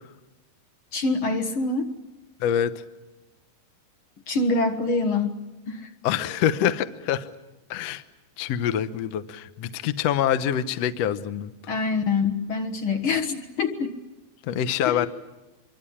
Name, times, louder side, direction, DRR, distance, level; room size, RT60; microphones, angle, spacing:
voice 1, 0.9-1.9 4.3-5.3 5.7-5.9 11.7-14.0 14.9-15.1, left 3 dB, 55° left, 7 dB, 1.4 m, -25 dB
voice 2, 2.4-2.7 6.0-7.3 7.7-8.0 8.4-11.5 14.4-15.1, left 9 dB, 85° left, 12 dB, 1.4 m, -25 dB
26.0 x 24.0 x 8.7 m, 1.1 s
omnidirectional pair, 4.6 m